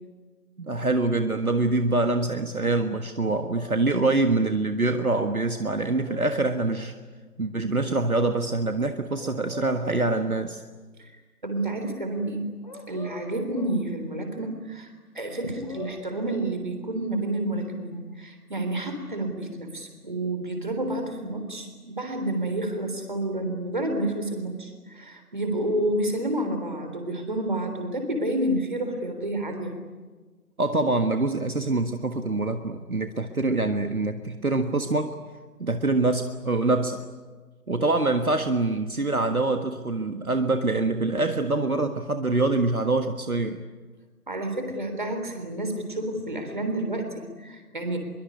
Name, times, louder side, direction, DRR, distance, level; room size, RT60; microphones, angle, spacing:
voice 1, 0.6-6.9 7.4-10.6 30.6-35.1 35.6-37.0 37.7-43.6, right 2 dB, 65° right, 7 dB, 1.7 m, -25 dB
sound 1, 3.5-4.3 5.5-7.0 9.2-10.4 12.6-13.8 15.3-16.5, left 2 dB, 30° left, 2.9 m, -42 dB
voice 2, 11.4-12.5 12.9-29.7 44.3-48.0, right 1 dB, 30° right, 5 dB, 3.6 m, -29 dB
24.0 x 23.0 x 9.7 m, 1.4 s
figure-of-eight pair, 170°, 46 cm